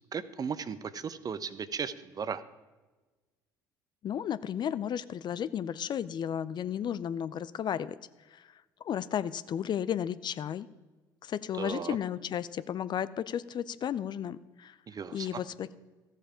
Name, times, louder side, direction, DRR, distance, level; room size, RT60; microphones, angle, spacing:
voice 1, 0.1-2.4 11.5-12.0 14.9-15.4, right 6 dB, 35° right, 15 dB, 0.7 m, -36 dB
voice 2, 4.0-8.0 8.3-8.4 8.8-10.7 11.2-14.7 15.1-15.8, left 9 dB, 45° left, 16 dB, 0.5 m, -33 dB
14.0 x 7.4 x 5.0 m, 1.3 s
hypercardioid pair, 60°, 11 cm